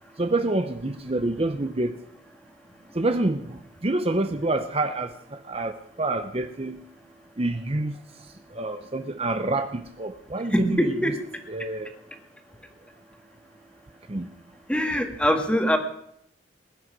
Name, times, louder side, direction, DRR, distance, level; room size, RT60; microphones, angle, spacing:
voice 1, 0.2-1.9 3.0-3.4 3.8-5.1 5.5-5.7 6.0-6.8 7.4-7.9 8.6-10.9 11.5-11.9 14.1-14.3, right 2 dB, 30° right, 8 dB, 0.8 m, -27 dB
voice 2, 10.5-11.3 14.7-15.8, equal, 5° left, 5 dB, 1.7 m, -23 dB
20.5 x 11.0 x 6.1 m, 0.74 s
head